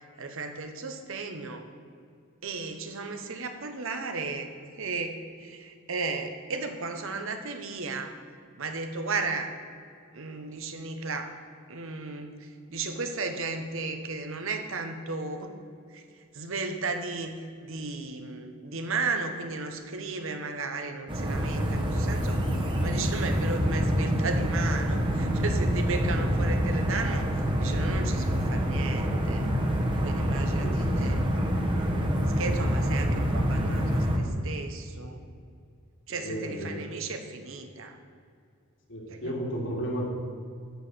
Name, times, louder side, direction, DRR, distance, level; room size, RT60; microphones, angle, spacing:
voice 1, 0.2-1.7 2.4-8.2 8.6-9.6 10.1-11.3 11.7-15.5 15.9-17.4 17.6-22.4 22.8-27.3 27.6-29.5 30.0-31.2 32.4-35.2 36.1-38.0 39.1-39.4, right 3 dB, 65° right, 7 dB, 1.0 m, -34 dB
sound 1, 21.1-34.2, equal, 25° right, 1.1 m, -26 dB
voice 2, 30.6-31.2 36.1-36.8 38.9-40.1, equal, 60° left, -2 dB, 2.5 m, -34 dB
11.5 x 4.8 x 7.9 m, 2.3 s
head